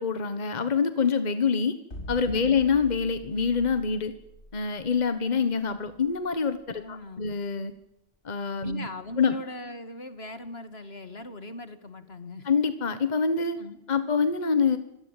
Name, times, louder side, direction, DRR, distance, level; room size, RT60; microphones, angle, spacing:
voice 1, 0.0-1.8 2.1-4.1 4.5-7.7 8.2-8.9 9.2-9.4 12.4-13.6 13.9-14.8, left 5 dB, 40° left, 11 dB, 1.4 m, -25 dB
sound 1, 1.9-8.1, left 1 dB, 85° left, 4.8 m, -45 dB
voice 2, 2.3-2.7 6.7-7.3 8.6-12.5 13.6-13.8, left 2 dB, 65° left, 10 dB, 2.5 m, -40 dB
25.0 x 18.5 x 9.1 m, 0.85 s
omnidirectional pair, 1.1 m